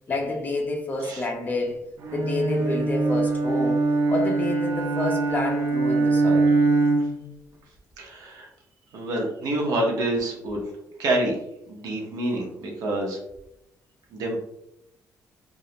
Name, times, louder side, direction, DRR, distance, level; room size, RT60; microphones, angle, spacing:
voice 1, 0.1-1.8 2.1-3.8 4.1-6.5, left 2 dB, 25° left, 0.4 m, -28 dB
Bowed string instrument, 2.0-7.3, right 3 dB, 45° right, 0.3 m, -23 dB
voice 2, 8.0-8.5 8.9-10.6 11.0-11.4 11.7-13.2 14.1-14.4, right 1 dB, 85° right, 0.7 m, -27 dB
2.2 x 2.0 x 2.7 m
cardioid pair, 160°, 6 cm